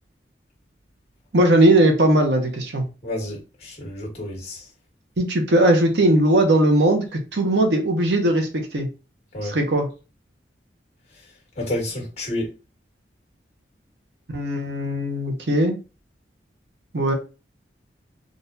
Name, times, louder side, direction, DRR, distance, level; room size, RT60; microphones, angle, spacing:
voice 1, 1.3-2.8 5.2-8.9 9.4-9.9 14.3-15.8 16.9-17.1, right 1 dB, 75° right, 0.8 m, -19 dB
voice 2, 3.0-4.7 9.3-9.5 11.5-12.5, left 1 dB, 35° left, 1.5 m, -30 dB
3.8 x 2.4 x 2.7 m
head